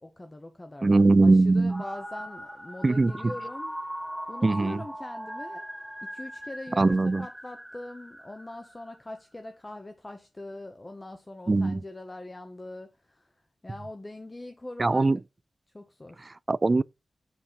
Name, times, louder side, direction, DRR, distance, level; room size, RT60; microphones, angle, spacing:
voice 1, 0.0-3.8 4.3-5.7 6.0-13.3 13.6-15.1 15.7-16.3, left 1 dB, 25° left, 1.0 m, -42 dB
voice 2, 0.8-1.8 2.8-3.3 4.4-4.8 6.8-7.3 11.5-11.8 14.8-15.2 16.5-16.8, right 3 dB, 35° right, 0.3 m, -21 dB
sound 1, 1.7-9.0, equal, ahead, 1.3 m, -40 dB
8.0 x 4.7 x 4.2 m
wide cardioid pair, 95°, 0 cm